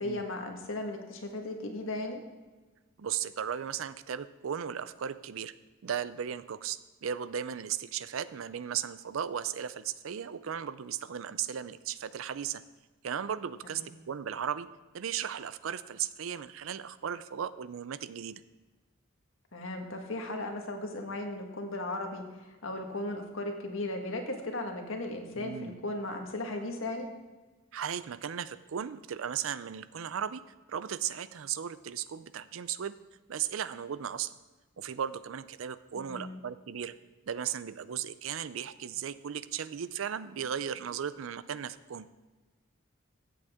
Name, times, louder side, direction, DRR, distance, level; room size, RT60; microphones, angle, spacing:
voice 1, 0.0-2.2 13.6-13.9 19.5-27.1 35.9-36.4, left 2 dB, 80° left, 3 dB, 1.6 m, -36 dB
voice 2, 3.0-5.5 5.8-12.6 13.0-14.7 14.9-18.4 25.4-25.7 27.7-30.4 30.7-33.0 33.3-34.4 34.8-36.9 37.3-42.1, right 8 dB, 80° right, 15 dB, 0.5 m, -36 dB
15.0 x 7.8 x 3.6 m, 1.3 s
head